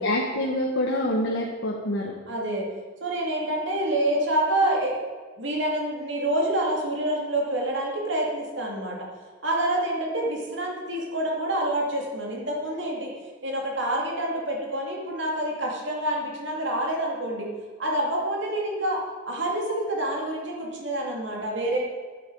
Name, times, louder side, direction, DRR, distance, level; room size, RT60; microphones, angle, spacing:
voice 1, 0.0-2.1, left 1 dB, 70° left, -3 dB, 1.4 m, -26 dB
voice 2, 2.3-2.7 3.0-5.0 5.4-9.0 9.4-13.1 13.4-17.5 17.8-21.8, right 1 dB, 65° right, -1 dB, 2.5 m, -27 dB
11.0 x 9.4 x 4.8 m, 1.5 s
head